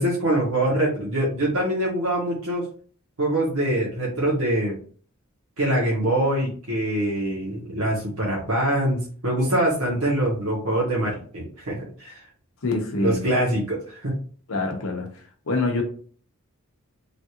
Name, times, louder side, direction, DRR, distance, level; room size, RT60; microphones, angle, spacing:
voice 1, 0.0-2.7 3.2-4.8 5.6-12.2 13.0-14.1, right 1 dB, 80° right, 1.1 m, -24 dB
voice 2, 12.6-13.2 14.5-15.1 15.5-15.8, left 3 dB, 65° left, 0.8 m, -25 dB
3.2 x 2.5 x 2.8 m
head